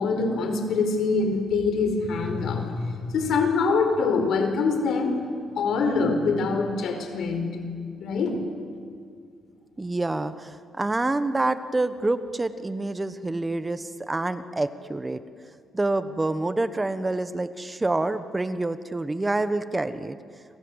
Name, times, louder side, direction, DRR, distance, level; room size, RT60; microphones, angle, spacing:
voice 1, 0.0-5.1 5.5-7.5 8.0-8.4, left 4 dB, 70° left, 6 dB, 4.8 m, -24 dB
voice 2, 9.8-15.2 15.7-20.2, right 2 dB, 20° right, 12 dB, 1.2 m, -27 dB
28.5 x 26.0 x 8.1 m, 2.3 s
cardioid pair, 90°, 0 cm